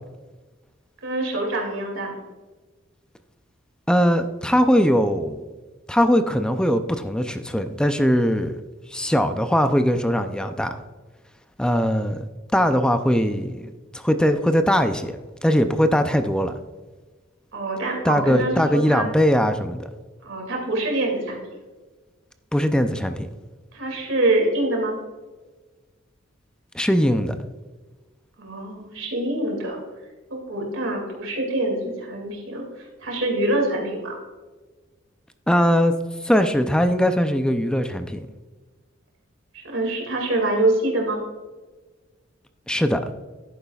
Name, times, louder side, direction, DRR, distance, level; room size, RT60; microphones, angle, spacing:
voice 1, 1.0-2.2 17.5-19.1 20.2-21.4 23.7-25.0 28.4-29.8 30.3-32.6 33.0-34.2 39.5-41.2, right 2 dB, 75° right, 1 dB, 2.5 m, -25 dB
voice 2, 3.9-5.5 5.9-8.6 8.9-10.8 11.6-12.2 12.5-16.5 18.0-19.9 22.5-23.3 26.7-27.4 35.5-35.9 36.2-38.3 42.7-43.0, equal, 5° left, 8 dB, 0.5 m, -20 dB
11.0 x 9.1 x 2.4 m, 1.3 s
head